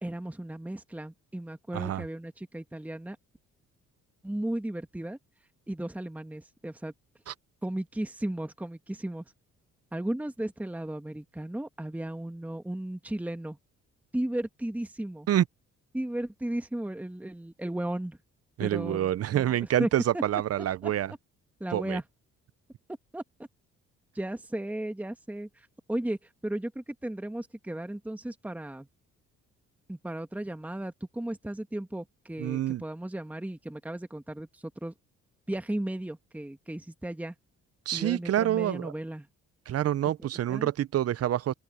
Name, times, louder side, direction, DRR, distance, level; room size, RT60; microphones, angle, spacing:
voice 1, 0.0-3.2 4.2-5.2 5.7-6.9 7.6-9.2 9.9-13.6 14.1-15.3 15.9-18.2 18.6-19.9 20.1-20.2 20.8-20.9 21.6-22.0 23.1-23.2 24.1-28.9 29.9-34.9 35.5-37.3 37.9-39.3 40.2-40.7, right 1 dB, 5° right, 1.4 m, -35 dB
voice 2, 1.7-2.0 7.3-7.4 15.3-15.4 18.6-21.1 21.7-22.0 32.4-32.8 37.9-38.9 39.7-41.5, right 12 dB, 55° right, 0.6 m, -27 dB
open air
cardioid pair, 90°, 30 cm